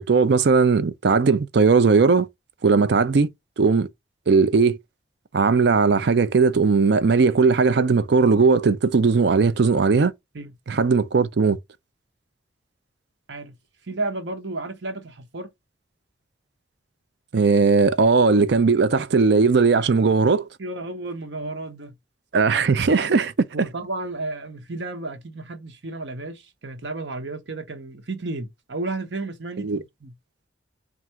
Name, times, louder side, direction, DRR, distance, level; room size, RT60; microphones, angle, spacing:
voice 1, 0.0-2.3 2.6-3.3 3.6-3.9 4.3-4.8 5.3-10.1 10.7-11.6 17.3-20.5 22.3-23.3 23.6-23.7 29.6-29.8, right 4 dB, 65° right, 0.5 m, -18 dB
voice 2, 13.8-15.5 20.6-22.0 23.5-30.1, right 2 dB, 85° right, 1.0 m, -32 dB
3.6 x 2.5 x 4.3 m
head